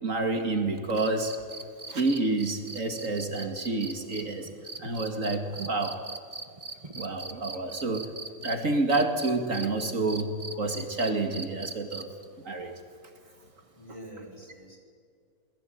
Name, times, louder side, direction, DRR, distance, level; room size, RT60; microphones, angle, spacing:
voice 1, 0.0-1.3 1.9-4.5 4.8-6.0 6.9-8.1 8.4-12.1 12.4-12.7, right 2 dB, 60° right, 6 dB, 2.6 m, -29 dB
sound 1, 0.9-8.5 8.9-12.2 13.9-14.0, right 3 dB, 25° right, 1.5 m, -40 dB
voice 2, 5.5-5.8 13.8-14.8, right 1 dB, 20° left, 1 dB, 5.5 m, -47 dB
28.0 x 21.0 x 9.3 m, 2.3 s
omnidirectional pair, 1.5 m